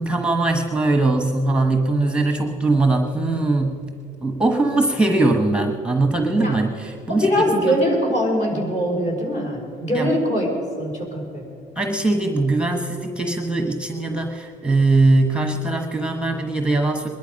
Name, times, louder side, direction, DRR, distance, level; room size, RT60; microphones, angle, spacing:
voice 1, 0.0-3.9 4.2-7.8 9.9-10.1 11.8-17.1, right 2 dB, 5° right, 5 dB, 1.1 m, -21 dB
voice 2, 7.1-10.5 10.8-11.4, equal, 45° left, -1 dB, 5.2 m, -22 dB
21.5 x 11.5 x 5.3 m, 2.4 s
cardioid pair, 110°, 17 cm